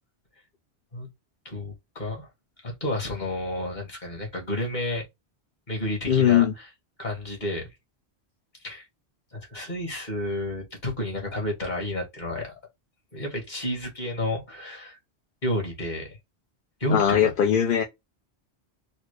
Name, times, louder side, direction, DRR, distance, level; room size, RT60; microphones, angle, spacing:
voice 1, 1.4-2.3 2.6-5.1 5.7-6.5 7.0-7.7 8.6-8.8 9.3-12.5 13.1-15.0 15.4-16.2 16.8-17.3, left 1 dB, 45° left, 1.7 m, -31 dB
voice 2, 6.1-6.5 16.9-17.8, left 9 dB, 60° left, 0.7 m, -20 dB
4.2 x 2.0 x 3.1 m
omnidirectional pair, 1.1 m